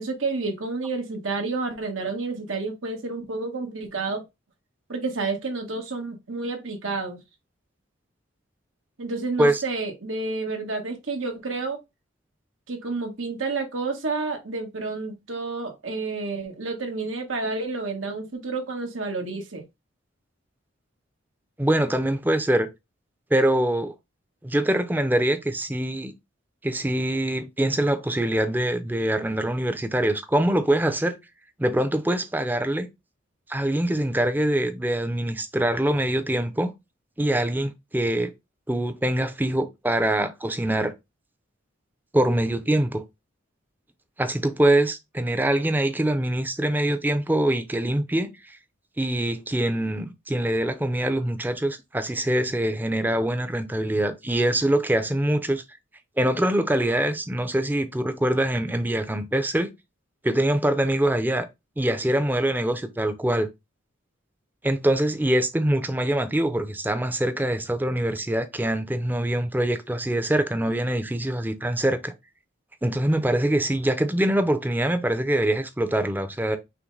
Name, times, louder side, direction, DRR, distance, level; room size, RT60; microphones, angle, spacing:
voice 1, 0.0-4.2 4.9-7.2 9.0-11.8 12.7-19.6, right 3 dB, 85° right, 1.3 m, -30 dB
voice 2, 21.6-22.7 23.3-23.9 24.4-26.1 26.6-31.2 31.6-32.9 33.5-36.7 37.2-38.3 38.7-40.9 42.1-43.0 44.2-48.6 49.0-55.6 56.2-59.7 60.2-61.5 61.8-63.5 64.6-72.1 72.8-76.6, right 1 dB, 10° right, 0.5 m, -24 dB
5.9 x 2.1 x 3.9 m
head